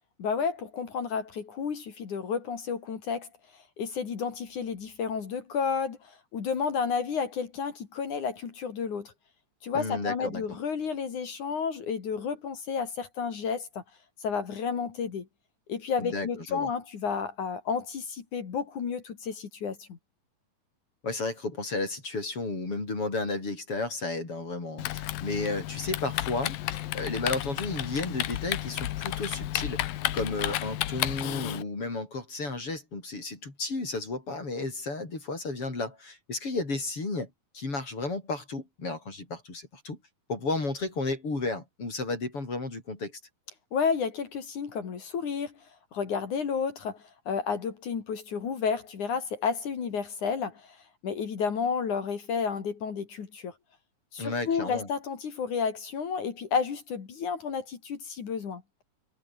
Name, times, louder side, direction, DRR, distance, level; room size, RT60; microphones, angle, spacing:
voice 1, 0.2-9.1 9.6-13.8 14.2-15.3 15.7-20.0 43.7-53.5 54.1-58.6, left 6 dB, 60° left, 4.2 m, -31 dB
voice 2, 9.7-10.4 16.0-16.7 21.0-37.3 37.5-40.0 40.3-43.1 54.2-54.9, left 3 dB, 40° left, 6.8 m, -33 dB
Typing, 24.8-31.6, left 14 dB, 85° left, 2.9 m, -32 dB
omnidirectional pair, 4.0 m